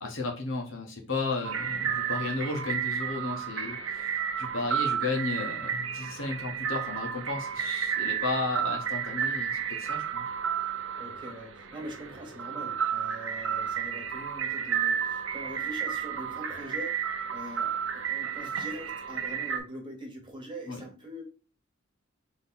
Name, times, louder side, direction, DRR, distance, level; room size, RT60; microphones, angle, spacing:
voice 1, 0.0-10.3 20.7-20.8, left 3 dB, 70° left, 1 dB, 1.3 m, -34 dB
sound 1, 1.4-19.6, right 8 dB, 80° right, 0.7 m, -32 dB
voice 2, 11.0-21.2, right 1 dB, 25° right, 0 dB, 1.4 m, -43 dB
3.8 x 3.1 x 4.0 m, 0.36 s
head